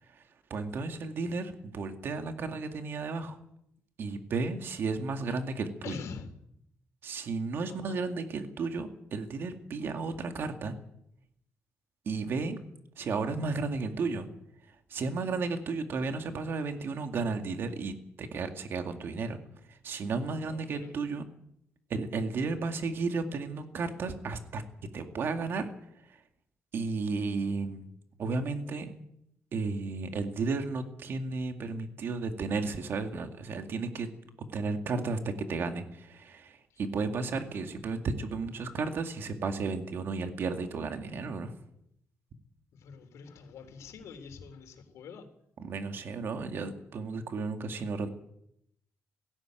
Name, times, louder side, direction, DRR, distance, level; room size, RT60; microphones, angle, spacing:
voice 1, 0.5-3.4 4.0-6.0 7.0-10.7 12.1-12.6 13.0-14.3 14.9-19.4 19.7-21.2 21.9-24.6 24.9-25.7 26.1-26.2 26.7-27.8 28.2-28.9 29.5-34.1 34.5-41.5 45.6-48.1, right 4 dB, 45° right, 6 dB, 2.2 m, -33 dB
voice 2, 5.8-6.3 7.7-8.0 20.4-20.9 36.7-36.8 42.7-45.3, left 5 dB, 75° left, 7 dB, 3.6 m, -45 dB
17.5 x 16.5 x 9.2 m, 0.76 s
cardioid pair, 170°, 5 cm